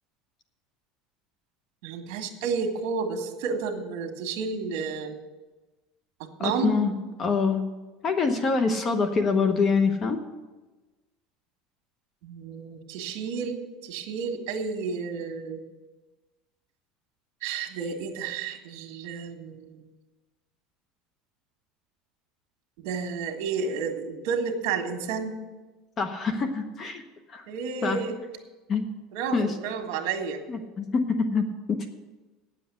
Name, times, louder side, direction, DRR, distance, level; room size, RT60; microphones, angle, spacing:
voice 1, 1.8-5.1 6.4-6.7 12.2-15.6 17.4-19.8 22.8-25.4 27.5-28.2 29.1-30.4, right 5 dB, 70° right, 5 dB, 1.6 m, -31 dB
voice 2, 6.4-6.9 7.2-7.7 8.0-10.2 26.0-27.0 27.3-27.4 27.8-28.0 28.7-28.8 29.3-29.5 30.5-31.9, left 4 dB, 30° left, 7 dB, 1.0 m, -25 dB
9.2 x 7.5 x 8.3 m, 1.2 s
cardioid pair, 145°, 0 cm